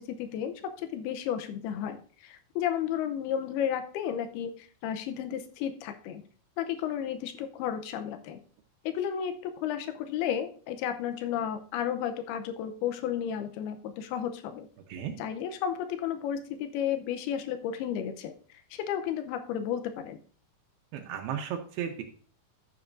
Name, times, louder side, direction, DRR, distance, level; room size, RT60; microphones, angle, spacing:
voice 1, 0.0-6.2 6.6-8.4 8.8-14.7 15.2-20.2, left 9 dB, 90° left, 8 dB, 2.7 m, -33 dB
voice 2, 20.9-22.0, right 9 dB, 80° right, 3 dB, 2.7 m, -34 dB
13.5 x 6.9 x 2.6 m, 0.42 s
omnidirectional pair, 4.5 m